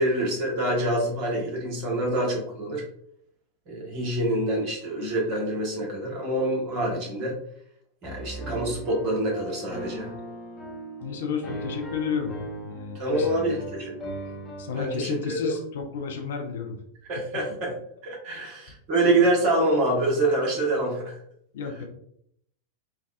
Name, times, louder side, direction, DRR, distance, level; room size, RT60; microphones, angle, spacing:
voice 1, 0.0-2.8 3.7-7.4 8.0-10.1 13.0-13.9 14.7-15.5 17.1-17.7 18.0-21.1, right 1 dB, 40° right, -3 dB, 1.3 m, -26 dB
Piano, 8.0-14.9, right 2 dB, 15° left, 0.7 m, -38 dB
voice 2, 11.0-13.7 14.6-16.8 18.3-18.5 21.5-21.8, left 6 dB, 60° left, 3 dB, 0.5 m, -32 dB
3.5 x 2.3 x 2.4 m, 0.70 s
figure-of-eight pair, 90°, 0 cm